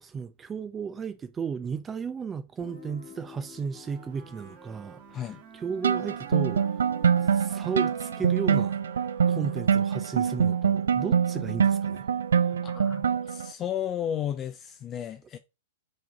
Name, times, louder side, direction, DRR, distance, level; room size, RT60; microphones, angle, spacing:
voice 1, 0.0-6.8 7.2-8.8 9.3-12.1, right 6 dB, 20° right, 0.5 m, -34 dB
Guitar, 2.6-8.2, left 5 dB, 60° left, 2.3 m, -52 dB
Wind instrument woodwind instrument, 3.7-11.2, right 7 dB, 40° right, 1.7 m, -50 dB
sound 1, 5.8-13.5, right 7 dB, 75° right, 0.5 m, -25 dB
voice 2, 12.4-15.4, left 10 dB, 30° left, 0.5 m, -34 dB
5.2 x 3.9 x 5.7 m
hypercardioid pair, 110°, 0 cm